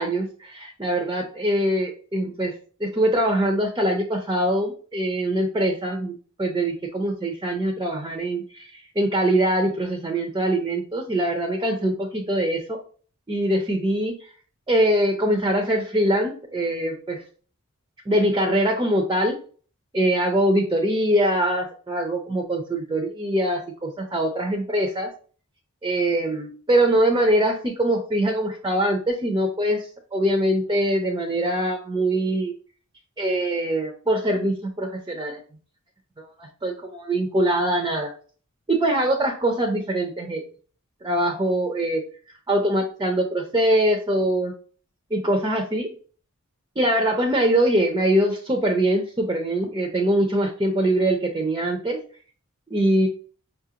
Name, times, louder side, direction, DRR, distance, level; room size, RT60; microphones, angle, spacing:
voice 1, 0.0-2.5 2.8-6.1 6.4-8.7 9.0-12.8 13.3-14.1 14.7-17.2 18.1-19.4 19.9-25.1 25.8-29.8 30.1-32.5 33.2-35.4 36.4-38.1 38.7-40.5 41.0-42.0 42.5-44.5 45.1-45.9 46.8-52.0 52.7-53.1, right 1 dB, 20° right, 2 dB, 0.5 m, -23 dB
5.4 x 2.4 x 2.8 m, 0.42 s
head